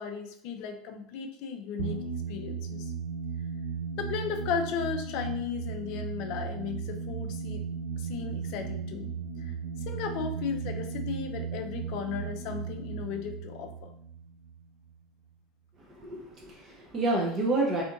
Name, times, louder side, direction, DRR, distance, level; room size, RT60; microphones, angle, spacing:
voice 1, 0.0-2.0 2.3-2.9 4.0-7.6 8.0-9.1 9.4-9.5 9.9-13.9, left 7 dB, 60° left, 6 dB, 0.4 m, -35 dB
sound 1, 1.8-15.0, right 6 dB, 80° right, 0.4 m, -36 dB
voice 2, 16.0-17.8, right 2 dB, 35° right, -2 dB, 0.6 m, -29 dB
2.7 x 2.5 x 2.5 m, 0.68 s
hypercardioid pair, 80°, 0 cm